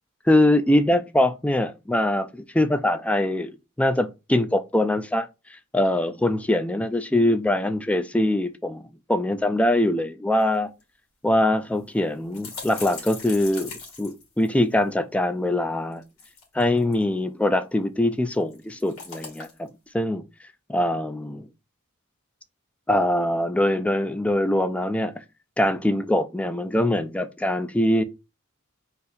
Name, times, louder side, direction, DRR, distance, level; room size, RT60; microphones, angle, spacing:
voice 1, 0.3-10.7 11.2-16.0 16.5-19.7 19.9-20.2 20.7-21.5 22.9-25.1 25.6-28.0, left 1 dB, 5° left, 0.3 m, -23 dB
sound 1, 10.4-10.5 10.8-10.9 11.7-14.9 15.9-17.0 18.3-19.7, left 4 dB, 70° left, 2.4 m, -40 dB
4.0 x 2.8 x 3.9 m
head